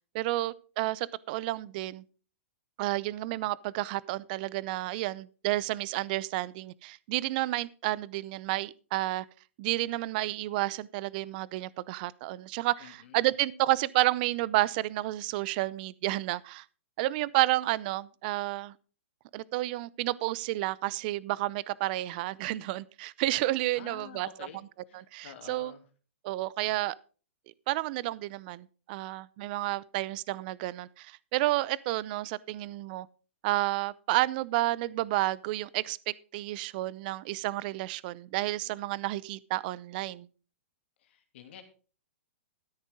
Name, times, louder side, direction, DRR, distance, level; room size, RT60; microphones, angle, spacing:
voice 1, 0.1-2.0 2.8-9.2 9.6-16.6 17.0-18.7 19.3-24.5 24.9-25.7 26.2-27.0 27.7-33.1 33.4-40.3, right 18 dB, 45° right, 0.7 m, -31 dB
voice 2, 12.8-13.3 23.7-24.6 24.9-25.8 41.0-41.6, left 9 dB, 60° left, 2.8 m, -49 dB
13.0 x 10.0 x 3.7 m
hypercardioid pair, 130°, 7 cm